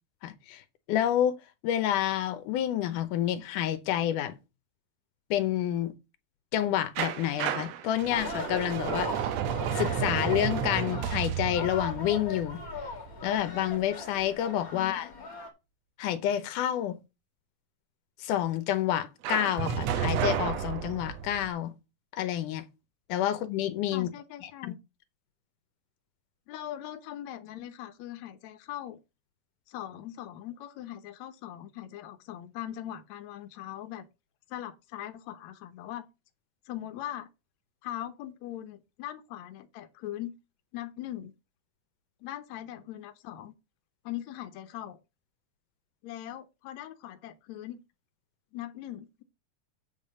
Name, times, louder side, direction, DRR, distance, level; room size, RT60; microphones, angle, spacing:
voice 1, 0.2-0.6 0.9-1.4 1.6-4.3 5.3-5.9 6.5-9.3 9.8-12.6 13.2-15.1 16.0-17.0 18.2-21.7 22.1-22.6 23.1-24.1, left 11 dB, 85° left, 2.4 m, -29 dB
sound 1, 7.0-13.7 19.2-21.5, right 8 dB, 70° right, 1.9 m, -32 dB
sound 2, 8.1-15.5, left 3 dB, 35° left, 1.8 m, -40 dB
voice 2, 14.7-15.2 23.9-24.8 26.5-29.0 29.7-34.1 34.5-36.0 36.7-37.3 37.8-40.3 40.7-41.3 42.2-43.5 44.0-45.0 46.0-47.8 48.5-49.2, left 12 dB, 70° left, 2.0 m, -40 dB
8.1 x 5.7 x 5.3 m
omnidirectional pair, 3.6 m